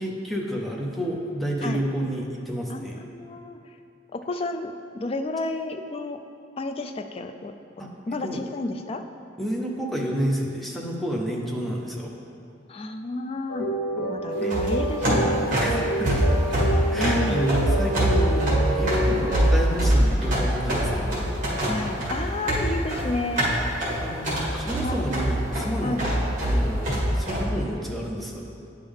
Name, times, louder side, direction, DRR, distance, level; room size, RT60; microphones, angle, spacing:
voice 1, 0.0-3.0 7.8-7.9 8.2-8.4 9.4-12.1 14.4-14.6 15.6-16.1 16.9-21.3 24.0-26.1 26.4-28.5, equal, ahead, -2 dB, 0.7 m, -30 dB
voice 2, 2.7-3.6 4.1-6.2 6.6-7.5 8.1-9.0 12.7-13.7 14.1-15.8 16.9-17.5 21.6-23.5 24.8-25.1 25.8-26.0, left 2 dB, 30° left, 7 dB, 0.3 m, -31 dB
sound 1, 13.5-19.5, right 1 dB, 85° left, 1.0 m, -28 dB
sound 2, 14.4-27.4, right 1 dB, 45° right, 1.8 m, -24 dB
9.2 x 5.4 x 3.5 m, 2.5 s
head